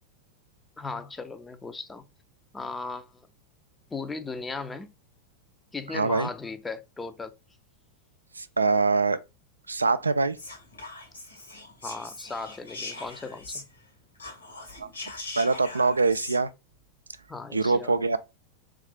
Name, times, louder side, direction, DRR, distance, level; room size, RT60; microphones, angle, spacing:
voice 1, 0.8-2.0 2.5-3.1 3.9-4.9 5.7-7.3 11.8-13.6 17.3-18.0, left 4 dB, 10° left, 0.5 m, -37 dB
voice 2, 5.9-6.3 8.4-9.2 9.7-10.4 14.8-14.9 15.4-16.5 17.5-18.2, right 3 dB, 80° right, 0.3 m, -24 dB
Whispering, 10.3-13.9 14.1-16.4, left 2 dB, 80° left, 1.9 m, -41 dB
3.7 x 3.1 x 3.4 m
figure-of-eight pair, 90°, 0 cm